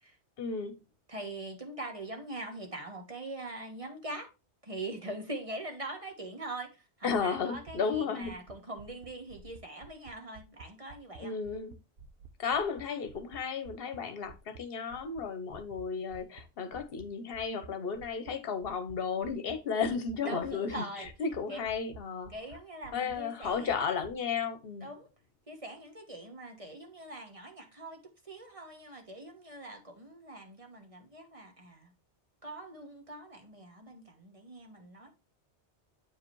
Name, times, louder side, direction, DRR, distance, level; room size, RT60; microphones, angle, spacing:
voice 1, 0.4-0.7 7.0-8.4 11.2-11.7 12.4-22.3 22.9-24.9, left 5 dB, 60° left, 1.1 m, -34 dB
voice 2, 1.1-4.3 4.6-11.3 20.2-21.1 21.5-21.7 22.3-23.8 24.8-25.1 25.5-28.0 28.2-31.9 32.4-35.1, right 2 dB, 30° right, 1.4 m, -42 dB
sound 1, 7.1-11.2 11.4-14.6 14.9-15.2 15.5-15.8 16.1-16.4 16.7-17.1 17.3-17.7 17.9-18.3 18.6-18.9 19.2-19.6 19.8-20.1 20.4-20.7 21.0-22.0 22.2-22.6 22.8-23.1 23.4-24.1, right 4 dB, 65° right, 1.0 m, -51 dB
8.6 x 4.8 x 3.0 m
omnidirectional pair, 1.1 m